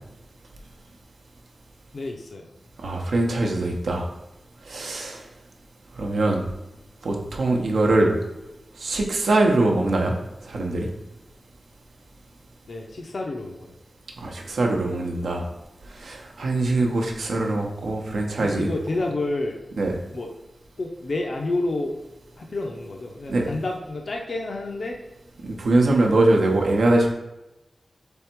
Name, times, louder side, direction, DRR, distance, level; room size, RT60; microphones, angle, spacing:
voice 1, 1.9-2.5 12.7-13.7 18.4-19.6 20.1-20.3 20.8-21.9 22.4-25.0, left 2 dB, 55° left, 1 dB, 0.5 m, -29 dB
voice 2, 2.8-4.1 4.7-5.2 6.0-6.4 7.0-8.1 8.8-10.1 10.4-10.9 14.2-15.4 16.0-18.7 19.8-19.9 23.3-23.4 25.4-27.1, right 2 dB, 85° right, 1 dB, 0.7 m, -22 dB
3.5 x 3.4 x 4.4 m, 0.96 s
wide cardioid pair, 110°, 0 cm